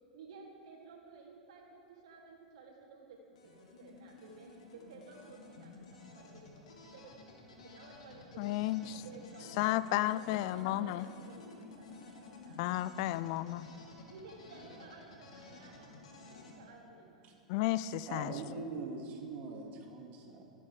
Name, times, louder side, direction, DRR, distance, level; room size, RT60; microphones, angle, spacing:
voice 1, 0.1-7.1 7.6-8.5 8.8-12.8 14.0-17.2, right 3 dB, 60° right, -1 dB, 3.3 m, -55 dB
sound 1, 3.3-16.6, left 3 dB, 70° left, 2.5 m, -53 dB
voice 2, 8.4-9.0 9.6-11.1 12.6-13.7 17.5-18.3, left 15 dB, 50° left, 17 dB, 0.4 m, -32 dB
voice 3, 18.1-20.4, right 3 dB, 40° right, 1 dB, 2.7 m, -42 dB
24.5 x 8.6 x 5.0 m, 2.6 s
figure-of-eight pair, 90°, 4 cm